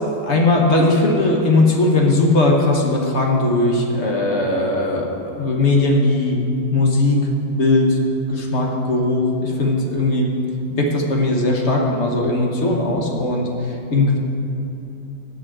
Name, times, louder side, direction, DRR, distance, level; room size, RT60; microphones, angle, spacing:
voice 1, 0.2-6.4 6.7-7.2 7.5-8.0 8.3-10.3 10.7-14.2, left 2 dB, 45° left, 0 dB, 1.0 m, -18 dB
7.9 x 6.3 x 7.7 m, 2.9 s
omnidirectional pair, 2.1 m